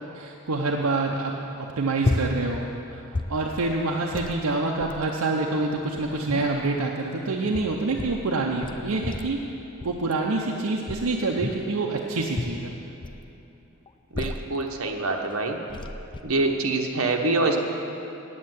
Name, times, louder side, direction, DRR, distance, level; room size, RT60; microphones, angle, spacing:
voice 1, 0.1-1.3 1.6-3.0 3.3-9.5 9.8-12.7, right 3 dB, 85° right, 0 dB, 0.8 m, -26 dB
sound 1, 2.0-2.7 3.0-3.8 4.1-4.4 4.8-5.0 5.7-6.7 7.3-8.2 8.6-9.4 9.8-10.1 10.9-11.7 12.3-13.2 13.9-14.6 15.3-15.4 15.7-16.2, left 2 dB, 25° left, 0.4 m, -31 dB
voice 2, 14.1-15.6 16.2-17.6, right 2 dB, 70° right, 2 dB, 1.2 m, -25 dB
8.6 x 8.6 x 9.4 m, 2.9 s
head